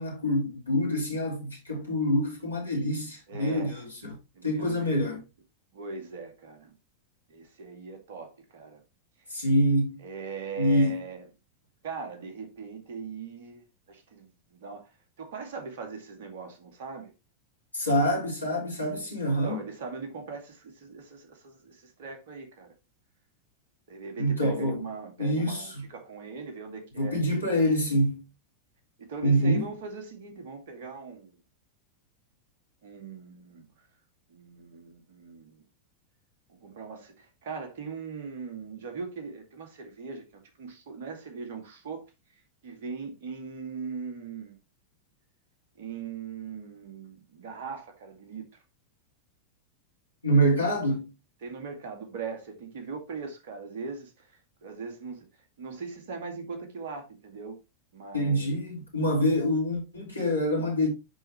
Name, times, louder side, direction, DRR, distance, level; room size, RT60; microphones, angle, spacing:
voice 1, 0.0-4.2 4.4-5.2 9.3-10.0 10.6-11.0 17.7-19.6 24.2-24.8 25.2-25.9 27.0-28.3 29.2-29.7 50.2-51.1 58.1-60.9, equal, 85° left, 3.5 m, -26 dB
voice 2, 3.3-3.8 4.3-5.0 5.7-6.7 7.3-8.8 10.0-11.3 11.8-13.6 13.9-14.9 15.2-17.1 19.4-22.7 23.9-27.2 29.0-31.4 32.8-33.7 34.3-35.6 36.5-42.1 42.6-44.6 45.8-48.6 51.4-55.3 55.6-57.6 57.9-58.6, right 5 dB, 55° right, 2.1 m, -40 dB
10.5 x 4.2 x 3.1 m
figure-of-eight pair, 90°, 0 cm